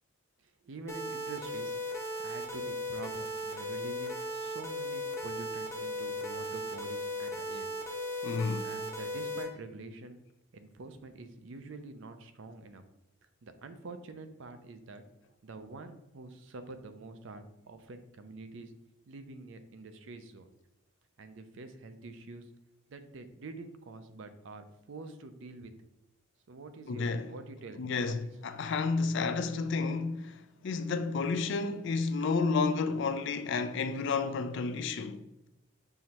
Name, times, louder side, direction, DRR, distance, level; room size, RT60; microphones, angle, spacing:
voice 1, 0.4-1.8 2.2-7.7 8.1-8.2 8.6-10.2 10.5-12.8 13.4-15.0 15.4-18.7 19.1-20.5 21.2-22.5 22.9-25.7 26.5-28.2, right 3 dB, 60° right, 0.4 m, -46 dB
sound 1, 0.9-9.4, left 1 dB, 15° left, 0.7 m, -37 dB
voice 2, 8.2-8.7 26.9-27.3 27.8-35.2, left 4 dB, 55° left, 0.4 m, -31 dB
5.6 x 3.2 x 2.9 m
head